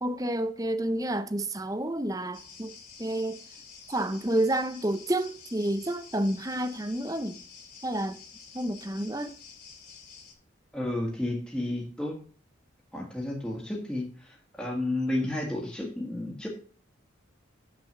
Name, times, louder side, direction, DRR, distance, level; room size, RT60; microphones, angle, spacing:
voice 1, 0.0-2.7 3.0-3.4 3.9-7.4 7.8-8.2 8.5-9.4, right 1 dB, 20° right, 0.6 m, -29 dB
sound 1, 2.3-10.3, left 5 dB, 45° left, 2.9 m, -49 dB
voice 2, 10.7-12.2 12.9-16.5, left 1 dB, 5° left, 1.6 m, -32 dB
7.6 x 6.1 x 6.5 m
head